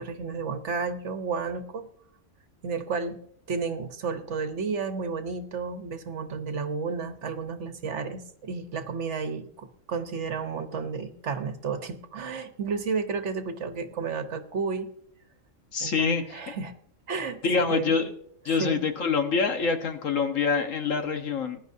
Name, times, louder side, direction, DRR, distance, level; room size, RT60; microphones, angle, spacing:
voice 1, 0.0-1.9 2.6-3.2 3.5-14.9 15.8-16.7 17.1-18.0 18.5-18.8, right 5 dB, 65° right, 8 dB, 1.2 m, -32 dB
voice 2, 15.7-16.4 17.4-18.1 18.4-21.6, left 5 dB, 80° left, 6 dB, 1.6 m, -26 dB
20.5 x 10.0 x 2.7 m, 0.66 s
omnidirectional pair, 1.3 m